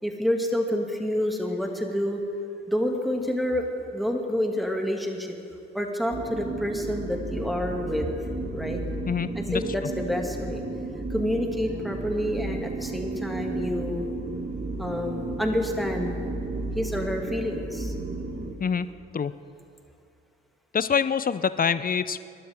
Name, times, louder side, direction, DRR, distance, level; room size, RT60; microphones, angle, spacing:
voice 1, 0.0-2.2 2.7-5.3 5.7-8.2 8.5-8.8 9.5-10.6 11.1-14.1 14.8-16.2 16.7-17.9, left 1 dB, ahead, 2 dB, 2.5 m, -28 dB
sound 1, 6.1-18.5, right 2 dB, 25° right, 2.0 m, -33 dB
voice 2, 9.1-9.6 18.6-18.9 19.1-19.3 20.7-22.2, left 6 dB, 30° left, 15 dB, 0.7 m, -25 dB
29.5 x 12.0 x 3.8 m, 2.5 s
hypercardioid pair, 40°, 30 cm